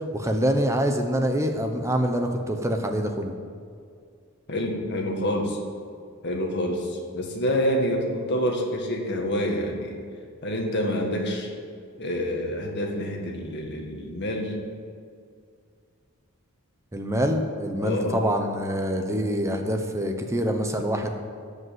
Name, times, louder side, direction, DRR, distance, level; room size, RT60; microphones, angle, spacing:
voice 1, 0.1-3.3 16.9-21.1, equal, 15° right, 4 dB, 1.0 m, -25 dB
voice 2, 4.5-5.6 6.2-10.0 10.4-11.5 12.0-14.5 17.8-18.2, equal, 50° left, 1 dB, 1.9 m, -27 dB
14.5 x 5.4 x 9.5 m, 2.2 s
head